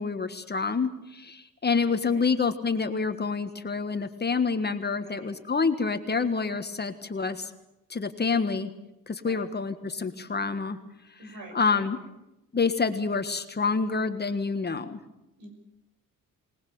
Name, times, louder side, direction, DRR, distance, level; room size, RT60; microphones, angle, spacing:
voice 1, 0.0-7.5 7.9-8.7 9.1-10.8 11.5-12.0 12.5-15.0, left 4 dB, 30° left, 9 dB, 1.5 m, -27 dB
voice 2, 1.9-2.2 5.0-5.4 9.2-9.5 11.2-11.9 15.4-15.6, right 2 dB, 80° right, 4 dB, 6.1 m, -46 dB
23.0 x 19.5 x 7.1 m, 0.94 s
cardioid pair, 100°, 33 cm